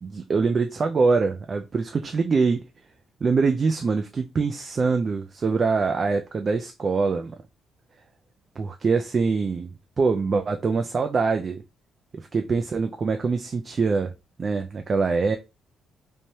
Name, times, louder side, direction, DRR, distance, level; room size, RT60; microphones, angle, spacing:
voice 1, 0.0-2.6 3.2-7.4 8.6-11.6 12.1-14.1 14.4-15.4, right 4 dB, 40° right, 0.3 m, -24 dB
3.2 x 2.1 x 2.7 m
cardioid pair, 90°, 0 cm